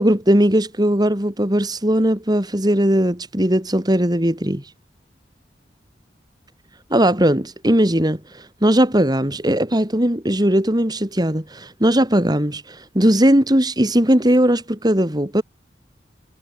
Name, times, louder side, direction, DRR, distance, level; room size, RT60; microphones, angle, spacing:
voice 1, 0.0-4.7 6.9-15.4, right 1 dB, 25° right, 3.2 m, -18 dB
head